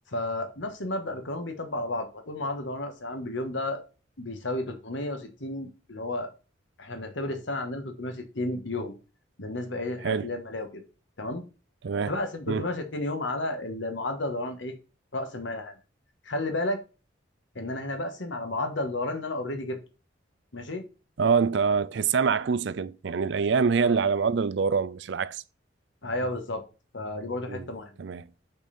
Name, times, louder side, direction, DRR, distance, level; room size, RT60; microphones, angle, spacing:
voice 1, 0.1-3.8 4.2-6.3 6.8-8.9 9.4-10.8 11.2-11.4 12.1-14.7 15.1-15.7 16.2-16.8 17.5-19.8 20.5-20.8 23.8-24.0 26.0-26.6 26.9-27.9, left 2 dB, 65° left, 1.4 m, -32 dB
voice 2, 21.2-25.4 27.5-27.7 28.0-28.3, right 5 dB, 60° right, 0.4 m, -25 dB
6.2 x 5.3 x 4.2 m
head